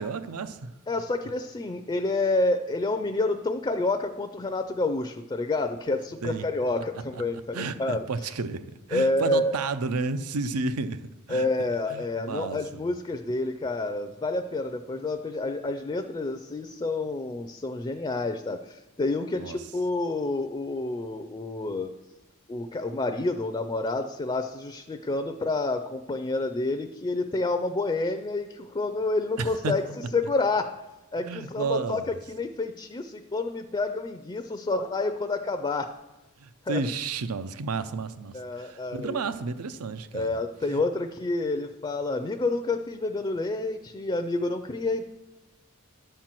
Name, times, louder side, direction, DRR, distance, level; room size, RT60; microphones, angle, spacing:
voice 1, 0.0-0.7 6.2-6.5 7.1-7.2 7.5-8.6 8.9-11.0 11.3-11.5 11.9-12.8 19.3-19.6 29.4-29.7 31.2-32.1 36.4-40.3 40.7-40.8, right 4 dB, 80° right, 12 dB, 0.6 m, -32 dB
voice 2, 0.9-8.0 8.9-9.5 11.3-21.9 22.5-29.9 30.1-30.7 31.1-35.9 36.7-36.8 38.3-39.2 40.1-45.0, left 2 dB, 20° left, 7 dB, 0.4 m, -29 dB
11.0 x 4.5 x 7.4 m, 1.1 s
head